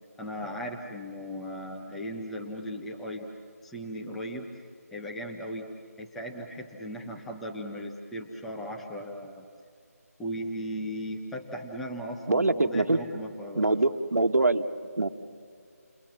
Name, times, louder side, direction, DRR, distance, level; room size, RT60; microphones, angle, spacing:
voice 1, 0.2-3.3 3.6-4.6 4.9-5.7 6.0-9.5 10.2-13.8, equal, ahead, 0 dB, 0.7 m, -37 dB
voice 2, 12.3-13.0 13.5-14.7 15.0-15.1, right 2 dB, 75° right, 8 dB, 1.5 m, -24 dB
29.5 x 22.0 x 7.3 m, 2.3 s
figure-of-eight pair, 170°, 9 cm